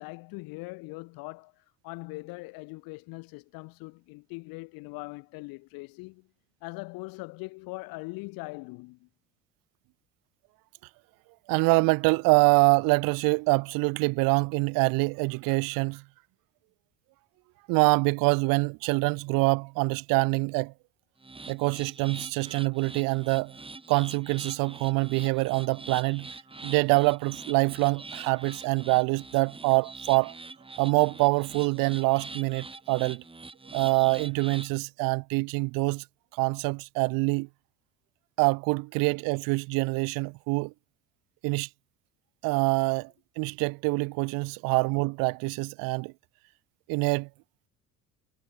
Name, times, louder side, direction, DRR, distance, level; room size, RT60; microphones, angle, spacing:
voice 1, 0.0-6.3 6.6-9.1, left 26 dB, 80° left, 5.3 m, -41 dB
voice 2, 11.5-16.0 17.7-20.7 21.5-23.5 23.9-26.3 26.6-30.3 30.8-33.2 33.7-36.0 36.4-37.5 38.4-40.7 41.4-41.7 42.4-46.1 46.9-47.3, right 28 dB, 75° right, 0.9 m, -25 dB
sound 1, 21.2-34.8, right 3 dB, 15° right, 3.6 m, -44 dB
supercardioid pair, 85°, 34 cm